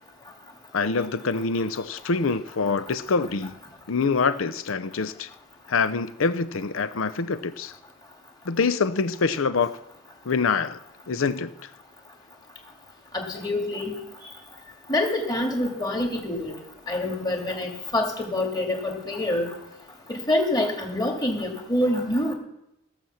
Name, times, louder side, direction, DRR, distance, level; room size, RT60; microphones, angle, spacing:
voice 1, 0.7-3.5 3.9-5.3 5.7-7.7 8.5-9.7 10.2-10.8 11.1-11.5, left 4 dB, 80° left, 13 dB, 0.6 m, -25 dB
voice 2, 13.1-13.9 14.9-16.5 16.9-19.5 20.1-22.3, left 1 dB, 20° left, 1 dB, 2.0 m, -26 dB
16.0 x 6.0 x 7.1 m, 0.84 s
head